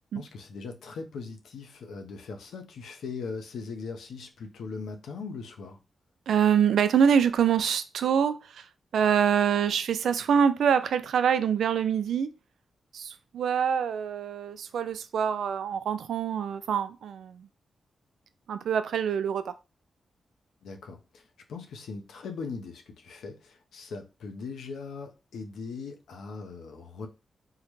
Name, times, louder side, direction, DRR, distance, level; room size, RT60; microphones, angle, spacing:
voice 1, 0.1-5.8 20.6-21.2 21.5-27.1, left 4 dB, 90° left, 0.6 m, -40 dB
voice 2, 6.3-8.6 8.9-12.3 12.9-17.5 18.5-19.5, right 7 dB, 85° right, 0.3 m, -25 dB
3.7 x 2.1 x 3.0 m
cardioid pair, 65°, 0 cm